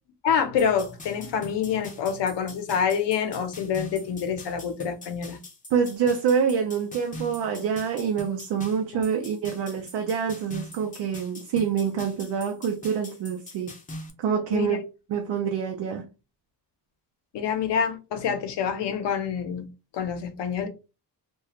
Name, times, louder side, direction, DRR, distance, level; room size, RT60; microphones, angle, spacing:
voice 1, 0.2-5.4 8.9-9.0 14.5-14.8 17.3-19.7 19.9-20.7, left 7 dB, 80° left, 0.7 m, -27 dB
sound 1, 0.6-14.1, left 1 dB, 20° left, 0.5 m, -43 dB
voice 2, 5.7-13.7 14.2-14.8 15.1-16.1, right 7 dB, 80° right, 0.6 m, -26 dB
2.4 x 2.3 x 2.8 m
wide cardioid pair, 125°, 41 cm